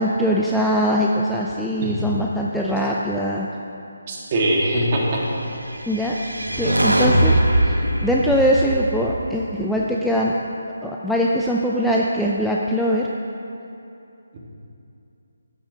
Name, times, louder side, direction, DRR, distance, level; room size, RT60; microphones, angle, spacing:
voice 1, 0.0-3.5 5.9-6.2 6.6-7.3 7.6-7.7 8.0-10.3 10.8-13.1, equal, ahead, -4 dB, 0.4 m, -21 dB
voice 2, 4.1-5.3 14.3-14.4, right 1 dB, 35° right, -2 dB, 1.6 m, -22 dB
sound 1, 5.7-10.0, right 1 dB, 85° right, 1.0 m, -21 dB
12.5 x 8.2 x 2.7 m, 2.7 s
figure-of-eight pair, 150°, 0 cm